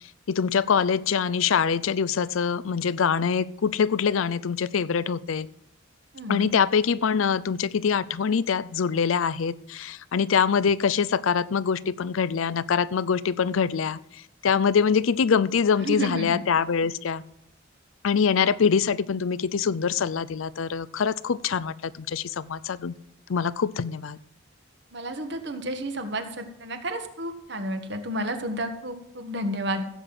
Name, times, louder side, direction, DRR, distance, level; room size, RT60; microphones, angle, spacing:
voice 1, 0.3-5.5 6.3-17.2 18.0-22.9 23.3-24.2, left 6 dB, 75° left, 17 dB, 0.5 m, -24 dB
voice 2, 6.1-6.5 15.8-16.4 24.9-29.8, right 1 dB, 55° right, 7 dB, 1.5 m, -31 dB
15.5 x 8.0 x 6.0 m, 0.76 s
head